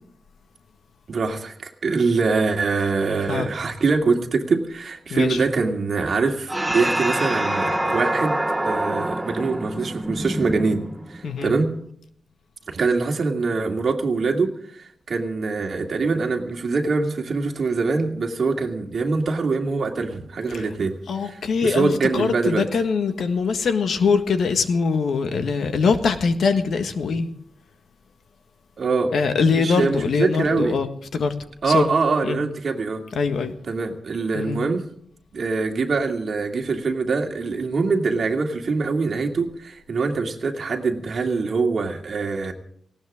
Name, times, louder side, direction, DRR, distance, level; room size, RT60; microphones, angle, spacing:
voice 1, 1.1-8.4 8.6-11.7 12.7-22.7 28.8-29.1 29.5-30.8 31.6-33.1 33.7-34.9 35.3-42.5, right 4 dB, 50° right, 3 dB, 2.4 m, -24 dB
sound 1, 6.5-11.3, right 1 dB, 10° right, 0.9 m, -25 dB
voice 2, 21.1-27.3 29.1-31.3 31.7-31.9 32.3-32.4 33.1-33.5 34.3-34.6, left 5 dB, 70° left, 8 dB, 1.6 m, -22 dB
19.0 x 17.5 x 3.7 m, 0.66 s
wide cardioid pair, 145°, 0 cm